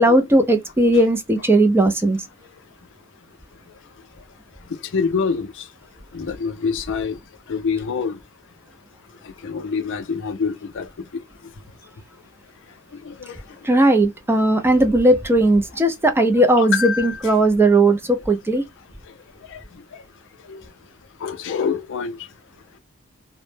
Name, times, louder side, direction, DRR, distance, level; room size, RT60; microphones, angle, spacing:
voice 1, 0.0-2.2 13.6-18.0 18.3-18.6, right 1 dB, 10° right, 0.3 m, -17 dB
voice 2, 4.7-5.7 6.1-7.2 7.5-8.2 9.2-10.9 13.0-13.4 16.6-17.3 19.5-19.8 20.5-20.6 21.2-22.2, left 5 dB, 60° left, 0.4 m, -26 dB
2.0 x 2.0 x 3.1 m
head